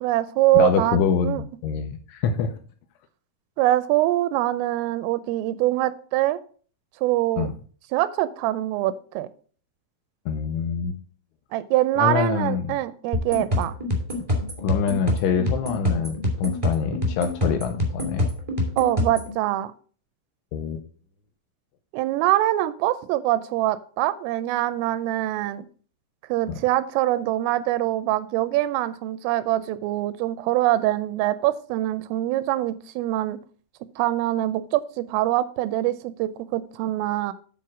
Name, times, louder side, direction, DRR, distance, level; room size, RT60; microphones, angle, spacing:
voice 1, 0.0-1.4 3.6-6.4 7.0-7.5 7.9-9.3 11.5-13.7 18.8-19.7 21.9-25.7 26.3-33.4 34.0-37.3, right 15 dB, 85° right, 14 dB, 3.1 m, -24 dB
voice 2, 0.5-2.6 7.4-7.5 10.3-11.0 12.0-12.8 14.6-18.3 20.5-20.8 26.5-26.6, left 7 dB, 80° left, 6 dB, 2.8 m, -25 dB
sound 1, 13.1-19.3, left 1 dB, 25° right, 0.7 m, -26 dB
9.4 x 4.3 x 6.1 m, 0.43 s
omnidirectional pair, 5.9 m